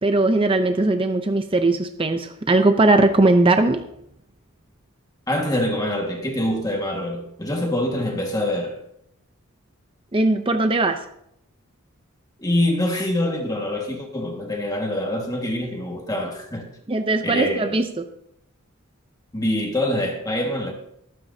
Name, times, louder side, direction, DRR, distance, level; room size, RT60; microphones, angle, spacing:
voice 1, 0.0-3.8 10.1-11.0 16.9-18.1, right 2 dB, 25° right, 0.7 m, -19 dB
voice 2, 5.3-8.8 12.4-16.6 17.2-17.8 19.3-20.7, left 1 dB, 15° left, 1.8 m, -25 dB
24.0 x 9.1 x 2.8 m
head